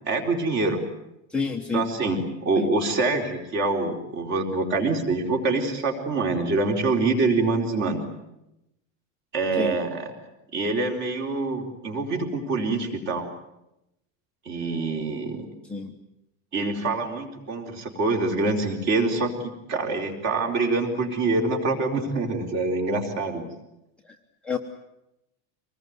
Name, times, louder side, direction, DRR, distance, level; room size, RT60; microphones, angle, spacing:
voice 1, 0.1-0.8 1.7-8.0 9.3-10.1 10.5-13.3 14.5-15.5 16.5-23.5, right 3 dB, 35° right, 3 dB, 4.1 m, -25 dB
voice 2, 1.3-1.8 2.6-2.7 9.6-9.8 15.7-15.9 24.1-24.2 24.4-24.6, left 5 dB, 5° left, -1 dB, 1.1 m, -28 dB
25.5 x 20.0 x 9.5 m, 0.87 s
supercardioid pair, 175°, 35 cm